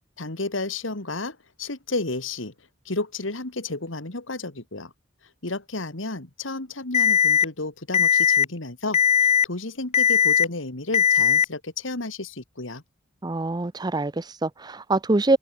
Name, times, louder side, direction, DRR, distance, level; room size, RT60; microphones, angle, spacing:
voice 1, 0.2-2.5 2.9-4.9 5.4-12.8, left 2 dB, 75° left, 2.5 m, -32 dB
Alarm, 6.9-7.4 7.9-8.4 8.9-9.4 9.9-10.4 10.9-11.4, left 8 dB, 35° left, 0.4 m, -18 dB
voice 2, 13.2-15.4, right 2 dB, 20° right, 0.6 m, -24 dB
open air
head